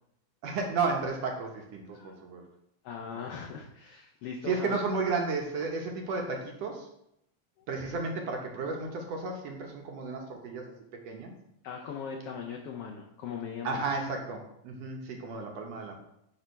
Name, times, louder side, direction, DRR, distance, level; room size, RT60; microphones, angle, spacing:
voice 1, 0.4-2.4 4.5-6.9 7.7-10.7 11.0-11.3 13.6-15.9, right 4 dB, 65° right, 2 dB, 1.9 m, -33 dB
voice 2, 2.8-4.8 11.6-13.9, left 6 dB, 85° left, 1 dB, 1.3 m, -39 dB
9.8 x 3.4 x 4.5 m, 0.78 s
omnidirectional pair, 3.5 m